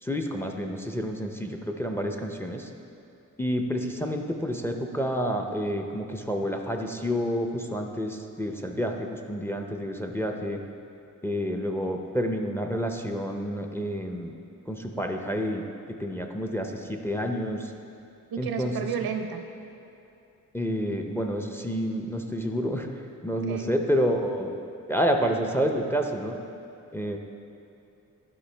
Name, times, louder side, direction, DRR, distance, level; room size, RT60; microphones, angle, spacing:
voice 1, 0.0-2.7 3.4-10.6 11.2-14.3 14.7-15.6 15.9-17.7 18.4-18.7 20.5-22.9 23.2-24.5 24.9-26.4 26.9-27.2, equal, 5° left, 4 dB, 0.5 m, -29 dB
voice 2, 18.3-19.4 23.5-23.7, right 7 dB, 85° right, 5 dB, 0.7 m, -32 dB
11.5 x 4.6 x 3.3 m, 2.8 s
cardioid pair, 95°, 35 cm